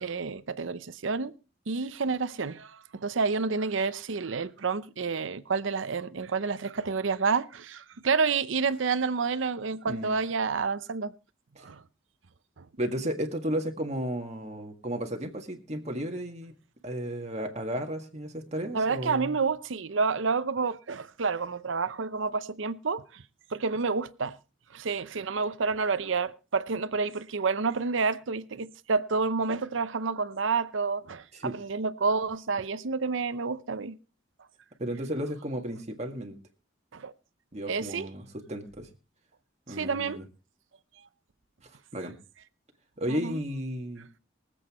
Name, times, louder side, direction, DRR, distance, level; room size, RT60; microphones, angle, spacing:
voice 1, 0.0-1.3 1.7-11.1 11.6-11.8 12.6-12.7 18.7-23.2 23.5-24.4 24.7-34.0 36.9-37.1 37.7-38.1 39.7-40.2 43.1-43.4, right 4 dB, 80° right, 0.7 m, -29 dB
voice 2, 12.8-16.5 16.8-19.4 31.3-31.5 34.8-36.4 37.5-38.9 39.7-40.2 41.6-42.1 43.0-44.1, equal, 35° right, 1.8 m, -33 dB
24.0 x 8.1 x 3.0 m
head